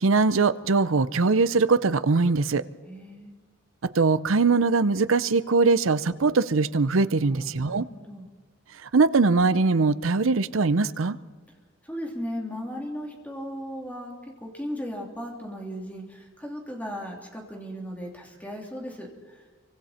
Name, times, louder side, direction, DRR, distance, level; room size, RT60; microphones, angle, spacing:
voice 1, 0.0-2.6 3.9-7.9 8.9-11.2, right 4 dB, 80° right, 15 dB, 0.7 m, -21 dB
voice 2, 2.8-3.3 7.3-8.3 11.9-14.1 14.4-19.4, equal, 10° left, 0 dB, 3.2 m, -36 dB
27.5 x 24.5 x 4.4 m, 1.4 s
head